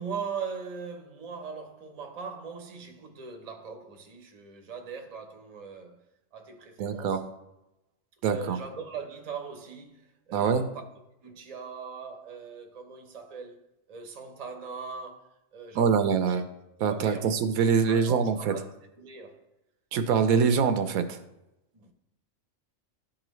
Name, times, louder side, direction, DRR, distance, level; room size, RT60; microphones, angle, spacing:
voice 1, 0.0-6.0 6.3-7.3 8.3-10.9 11.2-13.6 13.9-16.4 16.9-17.4 17.9-18.7 19.0-19.4 21.7-21.9, right 5 dB, 35° right, 0.7 m, -40 dB
voice 2, 6.8-7.2 8.2-8.6 10.3-10.6 15.7-16.4 16.8-18.5 19.9-21.2, right 6 dB, 80° right, 1.0 m, -24 dB
11.0 x 3.8 x 3.1 m
omnidirectional pair, 1.5 m